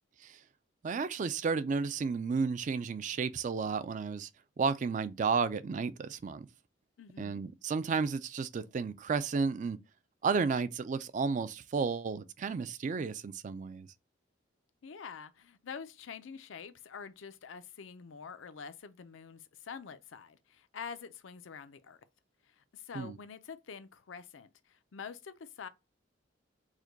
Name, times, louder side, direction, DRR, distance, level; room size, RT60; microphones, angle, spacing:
voice 1, 0.8-4.3 4.6-6.5 7.2-9.8 10.2-13.9 22.9-23.2, right 5 dB, 40° right, 0.3 m, -32 dB
voice 2, 7.0-7.4 14.8-22.0 22.5-25.7, left 6 dB, 85° left, 0.5 m, -46 dB
4.9 x 2.2 x 3.9 m
head